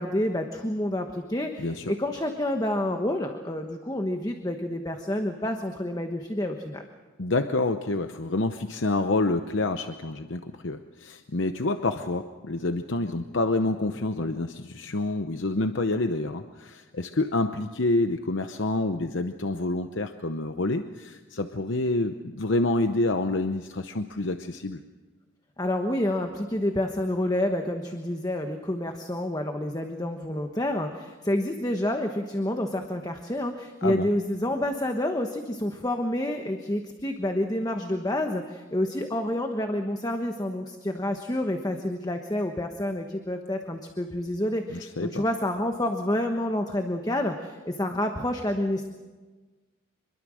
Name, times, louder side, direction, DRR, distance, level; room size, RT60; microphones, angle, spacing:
voice 1, 0.0-6.8 25.6-48.9, left 1 dB, 20° left, 5 dB, 1.2 m, -28 dB
voice 2, 1.6-1.9 7.2-24.8 33.8-34.1 44.7-45.2, left 2 dB, 65° left, 8 dB, 0.9 m, -28 dB
25.0 x 22.5 x 6.4 m, 1.3 s
head